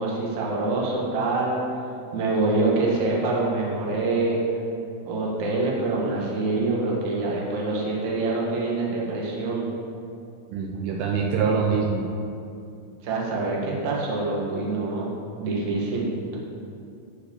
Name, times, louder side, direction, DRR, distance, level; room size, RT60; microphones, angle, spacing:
voice 1, 0.0-1.6 2.1-4.4 5.0-9.7 13.0-15.1 15.4-16.4, right 3 dB, 60° right, -4 dB, 2.1 m, -25 dB
voice 2, 10.5-12.1, right 5 dB, 90° right, 0 dB, 2.4 m, -24 dB
11.0 x 5.0 x 7.2 m, 2.6 s
omnidirectional pair, 5.7 m